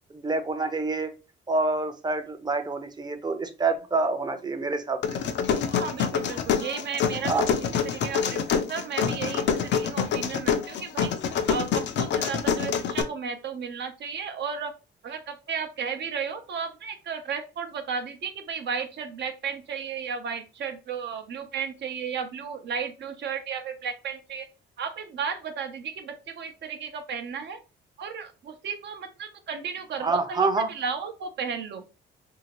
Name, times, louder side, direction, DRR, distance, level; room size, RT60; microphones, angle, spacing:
voice 1, 0.1-1.1 1.5-5.2 7.2-7.4 30.0-30.7, right 3 dB, 20° right, 7 dB, 0.7 m, -27 dB
sound 1, 5.0-13.0, left 7 dB, 65° left, 0.5 m, -26 dB
voice 2, 5.7-7.3 7.8-11.1 11.5-14.7 15.0-24.5 24.8-27.6 28.0-31.8, right 6 dB, 60° right, 7 dB, 0.7 m, -34 dB
2.8 x 2.8 x 2.9 m, 0.31 s
cardioid pair, 90°, 20 cm